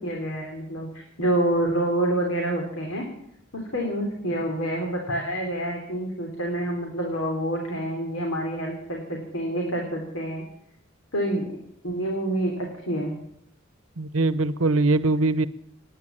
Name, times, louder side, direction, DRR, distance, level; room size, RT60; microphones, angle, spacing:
voice 1, 0.0-3.0 3.5-10.4 11.1-11.4 11.8-13.1, right 1 dB, 80° left, 1 dB, 3.5 m, -27 dB
voice 2, 14.0-15.5, right 2 dB, 85° right, 15 dB, 0.9 m, -22 dB
18.5 x 10.5 x 7.5 m, 0.71 s
head